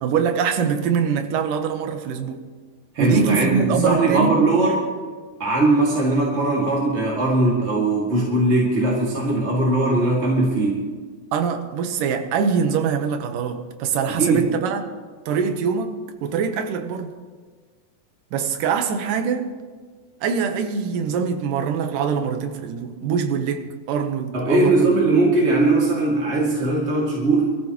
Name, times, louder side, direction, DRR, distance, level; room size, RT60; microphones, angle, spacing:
voice 1, 0.0-2.4 3.0-4.4 11.3-14.8 15.3-17.1 18.3-19.5 20.2-24.9, right 6 dB, 75° right, 7 dB, 2.5 m, -23 dB
voice 2, 2.9-4.8 5.4-10.9 14.1-14.4 24.3-27.5, right 2 dB, 25° right, -4 dB, 1.8 m, -20 dB
24.0 x 14.0 x 3.0 m, 1.5 s
omnidirectional pair, 4.0 m